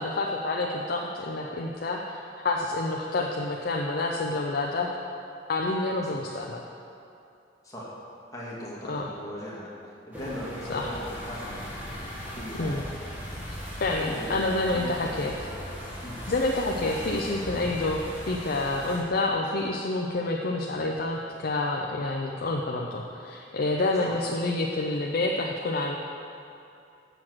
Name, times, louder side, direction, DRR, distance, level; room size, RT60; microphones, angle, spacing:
voice 1, 0.0-4.9 5.5-6.6 8.9-9.1 10.7-10.9 12.6-12.8 13.8-15.3 16.3-25.9, left 2 dB, 55° left, -1 dB, 0.6 m, -28 dB
voice 2, 8.3-9.8 10.1-11.7 12.3-12.8 14.0-15.2 16.0-16.2 24.1-24.2, equal, 20° left, -6 dB, 1.9 m, -38 dB
sound 1, 10.1-19.0, equal, 10° right, 2.0 m, -38 dB
7.4 x 7.0 x 6.1 m, 2.7 s
head